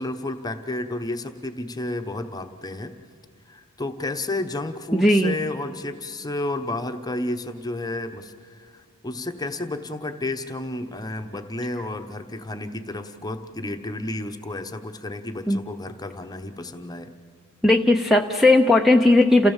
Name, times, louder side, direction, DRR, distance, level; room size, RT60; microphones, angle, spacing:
voice 1, 0.0-2.9 3.4-17.1, left 2 dB, 20° left, 7 dB, 1.0 m, -31 dB
voice 2, 4.9-5.3 15.5-15.6 17.6-19.5, left 2 dB, ahead, 3 dB, 0.7 m, -17 dB
28.5 x 15.5 x 7.3 m, 2.2 s
head